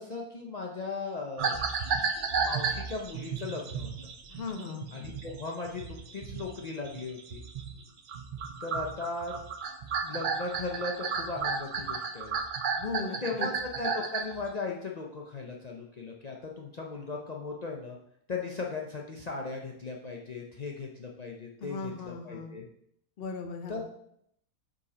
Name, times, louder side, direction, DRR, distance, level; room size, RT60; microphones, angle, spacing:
voice 1, 0.0-1.6 2.3-3.9 4.9-7.4 8.6-9.3 10.0-12.4 13.0-18.0 18.3-22.7 23.7-23.8, left 3 dB, 70° left, 0 dB, 0.4 m, -37 dB
sound 1, 1.4-7.8 8.1-14.4, right 5 dB, 85° right, 0.4 m, -33 dB
voice 2, 4.3-4.9 12.8-13.5 21.6-22.5 23.2-23.8, left 4 dB, 50° left, 5 dB, 0.8 m, -37 dB
5.1 x 4.1 x 4.9 m, 0.73 s
omnidirectional pair, 1.6 m